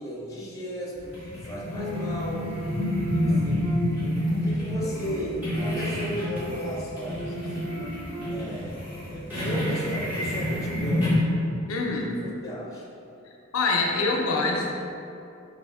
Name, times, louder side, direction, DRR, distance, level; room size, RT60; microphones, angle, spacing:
voice 1, 0.0-2.4 3.1-3.6 4.0-7.9 8.3-11.1 12.0-12.9, equal, 15° left, -5 dB, 0.6 m, -36 dB
sound 1, 1.0-11.2, left 1 dB, 10° right, 1.4 m, -28 dB
sound 2, 1.8-4.3 4.7-8.7, right 2 dB, 60° right, 0.5 m, -38 dB
voice 2, 11.7-12.1 13.5-14.7, left 3 dB, 85° left, 0 dB, 0.5 m, -25 dB
4.1 x 2.4 x 3.4 m, 2.6 s
head